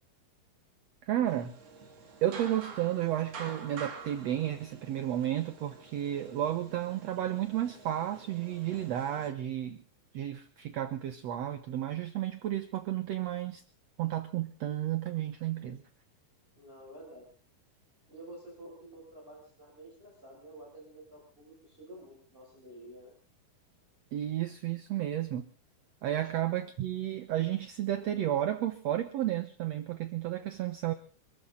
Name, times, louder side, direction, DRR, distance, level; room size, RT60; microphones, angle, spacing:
voice 1, 1.0-1.6 2.2-9.8 10.1-13.6 14.0-15.8 24.1-25.5 26.0-30.9, right 12 dB, 70° right, 9 dB, 1.7 m, -32 dB
sound 1, 1.3-9.3, right 5 dB, 45° right, 3.0 m, -48 dB
voice 2, 16.6-17.3 18.1-23.1 26.2-26.3, right 1 dB, 15° right, -2 dB, 6.0 m, -50 dB
26.5 x 13.5 x 3.9 m, 0.40 s
omnidirectional pair, 4.3 m